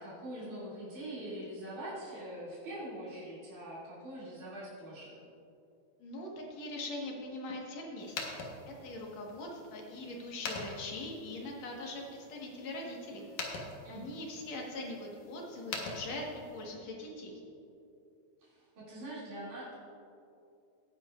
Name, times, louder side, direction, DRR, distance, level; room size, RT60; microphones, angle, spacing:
voice 1, 0.0-5.2 13.8-14.2 18.4-19.8, right 1 dB, 80° right, -9 dB, 4.2 m, -43 dB
voice 2, 6.0-8.2 8.8-13.2 13.9-16.3 16.5-17.4, left 2 dB, 65° left, -1 dB, 2.7 m, -42 dB
sound 1, 8.0-16.7, left 3 dB, 90° left, 2.8 m, -45 dB
19.0 x 9.6 x 2.5 m, 2.6 s
omnidirectional pair, 3.4 m